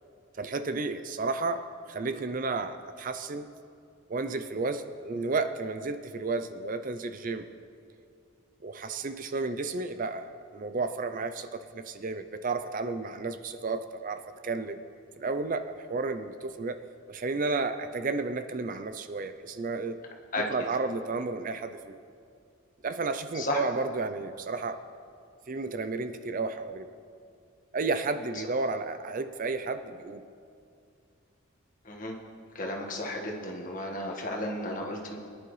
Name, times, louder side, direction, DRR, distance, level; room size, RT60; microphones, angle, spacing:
voice 1, 0.4-3.5 4.1-7.5 8.6-14.8 15.2-16.8 17.1-20.0 20.5-22.0 22.8-24.8 25.5-26.9 27.7-30.2, right 3 dB, 40° right, 9 dB, 0.5 m, -32 dB
voice 2, 32.5-35.2, left 1 dB, 40° left, 0 dB, 1.6 m, -33 dB
22.5 x 11.0 x 3.2 m, 2.4 s
head